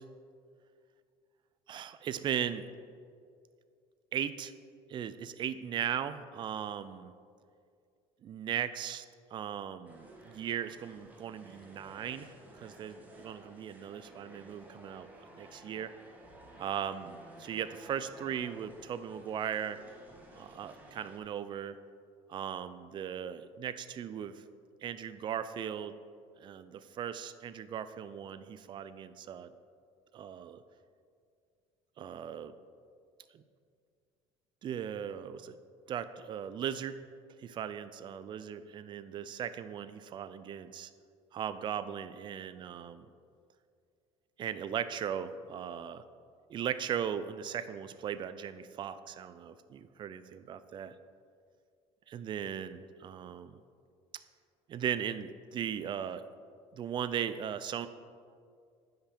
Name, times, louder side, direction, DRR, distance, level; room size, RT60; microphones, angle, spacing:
voice 1, 1.7-2.7 4.1-4.5 4.9-7.1 8.2-9.1 9.3-15.1 15.4-15.9 16.6-19.8 20.3-21.8 22.3-24.4 24.8-26.0 26.4-29.5 30.1-30.6 32.0-32.5 33.3-33.4 34.6-35.6 35.9-37.0 37.4-40.9 41.3-43.1 44.4-46.0 46.5-50.9 52.1-53.6 54.7-56.2 56.7-57.9, right 9 dB, 40° right, 13 dB, 0.5 m, -38 dB
sound 1, 9.8-21.2, right 1 dB, 15° right, 1.5 m, -54 dB
9.8 x 5.8 x 5.2 m, 2.2 s
cardioid pair, 125°, 12 cm